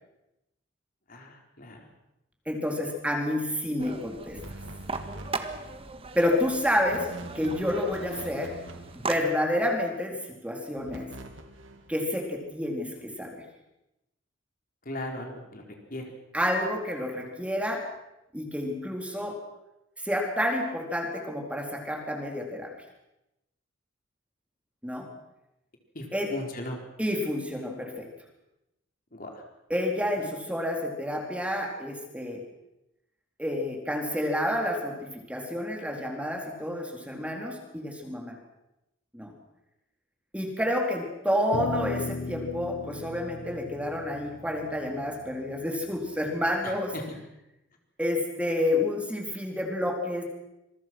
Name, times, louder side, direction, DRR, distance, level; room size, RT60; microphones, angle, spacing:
voice 1, 1.1-1.9 14.8-16.1 25.9-26.8 29.1-29.5 46.6-47.1, left 1 dB, 45° left, 2 dB, 4.3 m, -38 dB
voice 2, 2.5-4.4 6.1-7.0 7.3-8.5 8.9-10.2 10.4-11.1 11.9-13.4 16.3-17.8 18.3-19.4 20.0-22.7 24.8-25.1 26.1-26.3 27.0-28.1 29.7-32.4 33.4-38.3 39.1-39.3 40.3-46.9 48.0-50.2, left 1 dB, 5° right, 1 dB, 4.0 m, -29 dB
sound 1, 3.8-9.2, right 3 dB, 30° right, 1.8 m, -38 dB
sound 2, 4.3-5.9 6.8-9.4 10.8-11.9, right 1 dB, 75° right, 3.0 m, -43 dB
sound 3, 41.5-46.0, left 3 dB, 75° left, 1.6 m, -37 dB
27.0 x 23.5 x 6.2 m, 0.90 s
head